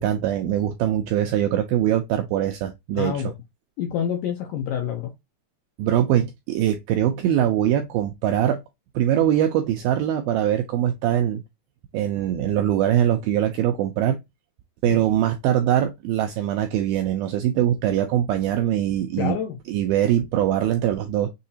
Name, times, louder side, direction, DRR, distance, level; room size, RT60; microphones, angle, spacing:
voice 1, 0.0-3.2 5.8-8.6 9.0-11.4 11.9-14.2 14.8-19.4 19.7-21.3, right 11 dB, 85° right, 2.1 m, -22 dB
voice 2, 2.9-3.3 3.8-5.1 14.8-15.0 19.2-19.6, left 9 dB, 75° left, 1.9 m, -27 dB
6.9 x 2.8 x 2.7 m
omnidirectional pair, 4.8 m